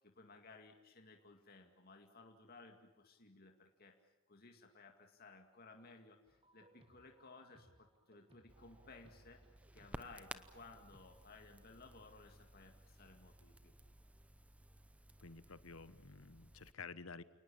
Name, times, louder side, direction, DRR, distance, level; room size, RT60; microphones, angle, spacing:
voice 1, 0.0-9.4 9.7-13.7, left 3 dB, 45° left, 4 dB, 2.3 m, -59 dB
sound 1, 6.3-11.2, right 1 dB, 25° right, 2.1 m, -68 dB
Crackle, 8.5-16.7, right 1 dB, 5° right, 0.8 m, -57 dB
voice 2, 15.2-17.2, left 4 dB, 70° left, 14 dB, 1.2 m, -51 dB
29.0 x 19.5 x 8.8 m, 0.98 s
head